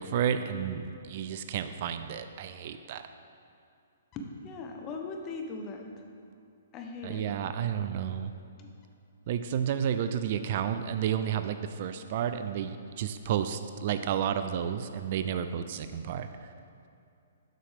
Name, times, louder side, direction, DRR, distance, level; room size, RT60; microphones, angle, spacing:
voice 1, 0.0-3.0 7.0-8.3 9.3-16.5, right 9 dB, 50° right, 10 dB, 0.3 m, -31 dB
voice 2, 4.1-6.0 6.7-7.2 8.6-8.7, left 3 dB, 30° left, 3 dB, 0.8 m, -39 dB
7.5 x 6.3 x 3.4 m, 2.6 s
hypercardioid pair, 130°, 0 cm